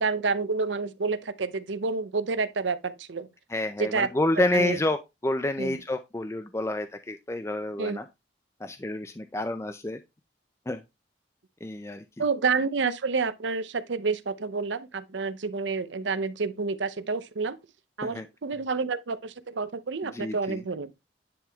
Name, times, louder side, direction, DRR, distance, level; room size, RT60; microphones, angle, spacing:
voice 1, 0.0-3.3 3.8-4.1 4.4-4.8 5.6-5.8 7.8-8.0 12.2-17.6 18.0-20.9, right 4 dB, 80° right, 0.7 m, -29 dB
voice 2, 3.5-8.0 8.6-10.0 10.7-10.8 11.6-12.0 18.0-18.2 20.1-20.6, left 1 dB, 15° left, 0.4 m, -29 dB
10.0 x 3.6 x 3.5 m
head